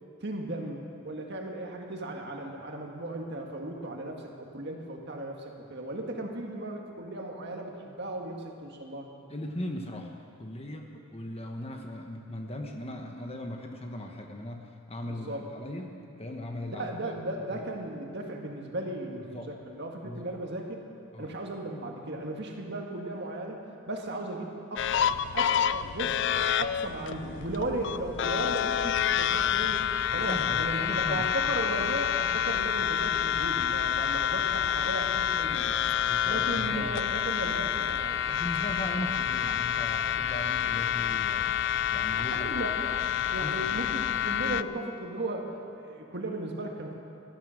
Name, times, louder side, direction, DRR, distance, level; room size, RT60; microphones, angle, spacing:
voice 1, 0.2-0.8 1.0-9.1 15.1-15.4 16.7-20.8 21.2-26.2 26.6-29.8 30.1-35.8 36.2-38.2 42.2-43.0 43.3-46.9, right 1 dB, 50° right, 1 dB, 1.8 m, -36 dB
voice 2, 9.3-17.1 17.5-17.6 19.3-19.5 20.0-20.4 21.1-21.3 30.1-31.3 36.0-37.0 38.3-41.5 41.9-42.6 43.4-43.7, left 1 dB, 25° left, 3 dB, 1.1 m, -38 dB
sound 1, 24.8-44.6, left 9 dB, 55° left, 0.4 m, -28 dB
17.0 x 13.0 x 6.5 m, 2.5 s
head